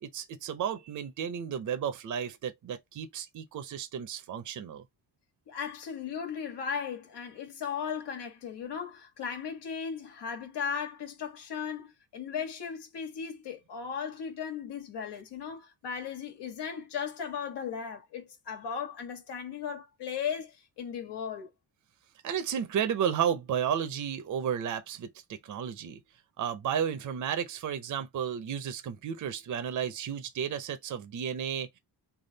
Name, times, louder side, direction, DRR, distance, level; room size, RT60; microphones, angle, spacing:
voice 1, 0.0-4.8 22.2-26.0 26.4-31.8, right 8 dB, 45° right, 0.6 m, -33 dB
voice 2, 5.5-21.5, left 7 dB, 75° left, 1.6 m, -37 dB
3.5 x 2.4 x 3.8 m
wide cardioid pair, 155°, 41 cm